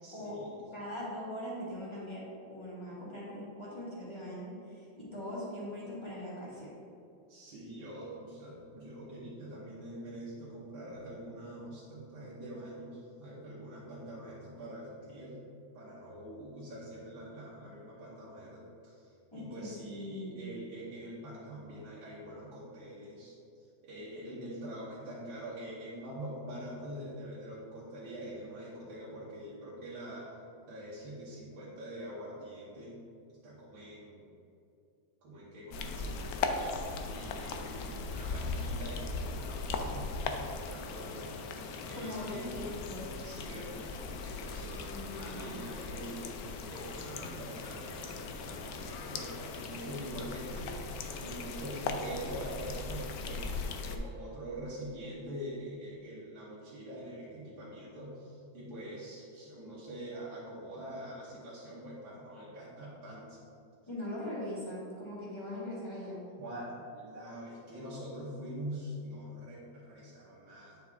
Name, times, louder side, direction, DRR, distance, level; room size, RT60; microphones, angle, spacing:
voice 1, 0.0-0.5 7.3-15.4 15.7-30.3 30.7-33.0 33.4-34.3 35.2-36.8 37.0-41.3 41.9-42.7 43.2-44.8 45.2-46.3 46.7-50.8 51.2-63.4 66.4-70.8, right 1 dB, 85° right, -8 dB, 2.0 m, -44 dB
voice 2, 0.7-6.8 19.3-20.5 41.9-43.1 44.7-45.6 63.9-66.2, left 1 dB, 15° left, -8 dB, 1.7 m, -41 dB
sound 1, 35.7-54.0, left 4 dB, 70° left, 0.9 m, -38 dB
9.0 x 4.7 x 3.5 m, 2.6 s
omnidirectional pair, 2.1 m